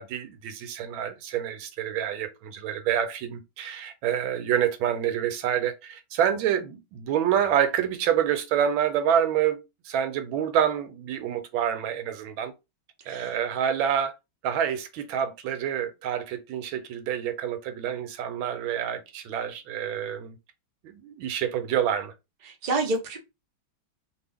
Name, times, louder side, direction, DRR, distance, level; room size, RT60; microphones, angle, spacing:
voice 1, 0.0-9.6 9.8-12.5 13.1-14.1 14.4-20.4 20.8-22.1, right 9 dB, 85° right, 1.4 m, -27 dB
voice 2, 22.6-23.2, right 2 dB, 65° right, 0.4 m, -27 dB
3.0 x 2.5 x 3.4 m
omnidirectional pair, 2.2 m